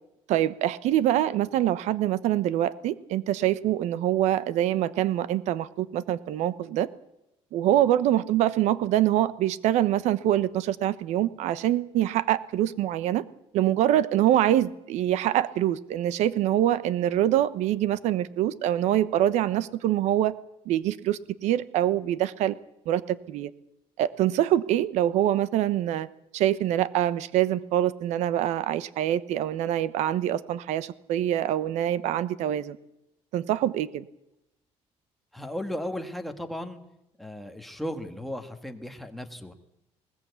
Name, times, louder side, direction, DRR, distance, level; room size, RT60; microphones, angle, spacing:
voice 1, 0.3-6.9 7.5-13.2 13.5-20.3 20.6-22.6 22.9-23.5 24.0-26.1 26.3-32.8 33.3-34.1, right 12 dB, 90° right, 1.0 m, -25 dB
voice 2, 35.3-36.8 37.2-39.5, left 1 dB, ahead, 1.7 m, -35 dB
20.5 x 19.0 x 8.3 m
cardioid pair, 165°, 11 cm